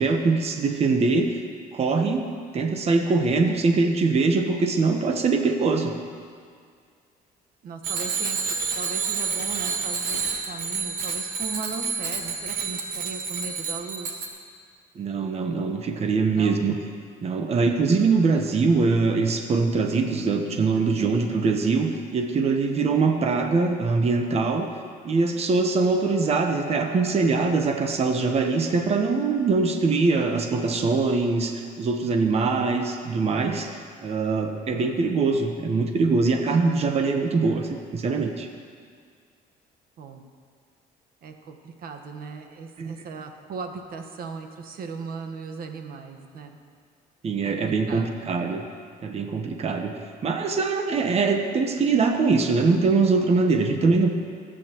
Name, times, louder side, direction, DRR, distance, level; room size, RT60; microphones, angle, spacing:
voice 1, 0.0-1.4 1.7-2.3 2.5-5.9 14.9-16.7 17.2-24.7 25.0-38.5 42.8-42.9 47.2-48.6 49.0-49.9 50.2-54.1, right 4 dB, 40° right, 4 dB, 1.0 m, -23 dB
voice 2, 7.6-14.3 16.3-16.7 40.0-40.2 41.2-46.6 47.4-48.3, right 5 dB, 60° right, 5 dB, 1.3 m, -38 dB
Bicycle bell, 7.8-14.3, right 5 dB, 75° right, 1.6 m, -29 dB
25.0 x 8.9 x 3.0 m, 2.1 s
cardioid pair, 110°, 17 cm